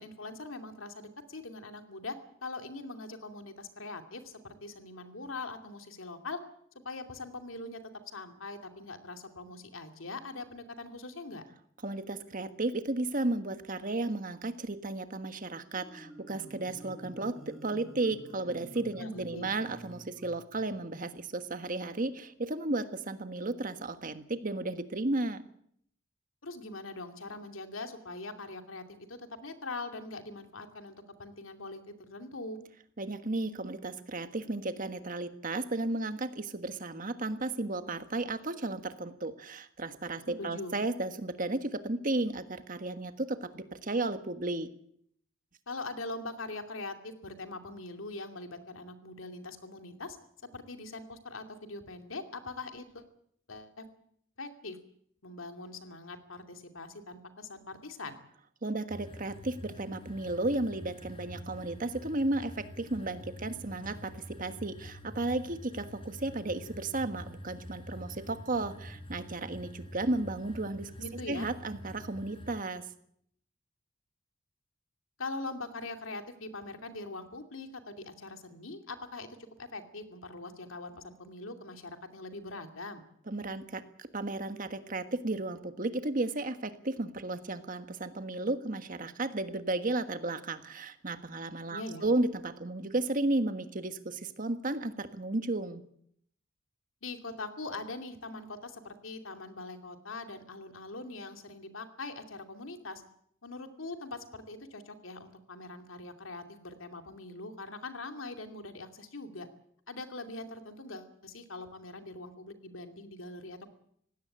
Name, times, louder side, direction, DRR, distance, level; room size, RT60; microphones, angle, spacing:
voice 1, 0.0-6.4 6.8-11.4 19.0-19.5 26.4-32.6 40.4-40.7 45.7-50.2 50.5-53.0 53.5-53.9 54.4-54.8 55.2-58.2 71.0-71.5 75.2-79.3 79.6-83.0 91.7-92.0 97.0-103.0 103.4-109.5 109.9-113.7, left 2 dB, 90° left, 6 dB, 2.6 m, -42 dB
voice 2, 11.8-25.4 33.0-44.7 58.6-70.9 71.3-72.8 83.3-95.8, right 2 dB, 40° right, 10 dB, 1.5 m, -34 dB
Marimba xylophone, 15.6-20.7, right 1 dB, ahead, 5.0 m, -50 dB
sound 1, 58.9-72.6, left 1 dB, 30° left, 4.4 m, -47 dB
19.0 x 17.0 x 8.8 m, 0.68 s
head